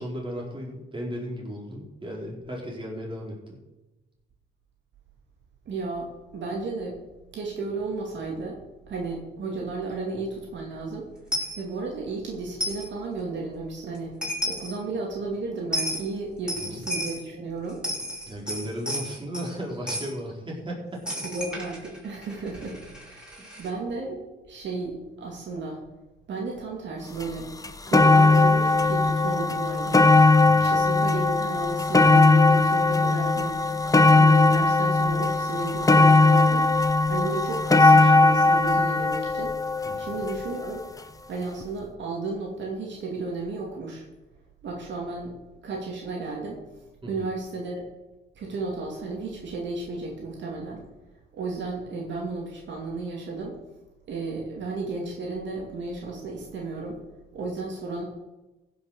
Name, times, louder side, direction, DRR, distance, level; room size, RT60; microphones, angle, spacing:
voice 1, 0.0-3.6 16.6-16.8 18.3-21.2 23.4-23.7 30.4-30.7 39.8-40.2 47.0-47.3, equal, 25° right, -2 dB, 4.6 m, -36 dB
voice 2, 5.7-7.0 7.3-8.6 8.9-11.1 11.6-14.2 14.4-17.8 21.3-23.2 23.6-25.8 26.3-27.5 27.9-33.7 34.1-36.7 37.1-39.6 40.0-40.8 41.3-44.0 44.6-45.3 45.6-46.6 47.1-47.8 48.3-50.8 51.3-53.6 54.1-57.0 57.3-58.0, right 3 dB, 65° right, -1 dB, 2.6 m, -33 dB
Coin (dropping), 11.3-11.6 12.6-12.9 13.9-14.0 14.2-14.7 15.7-16.0 16.5-17.2 17.7-19.5 19.9-20.1 21.1-23.7, equal, 5° right, 4.7 m, -32 dB
sound 1, 27.2-27.3 27.6-40.8 41.6-41.7, left 3 dB, 15° left, 0.8 m, -19 dB
15.0 x 6.3 x 6.7 m, 1.1 s
cardioid pair, 90°, 20 cm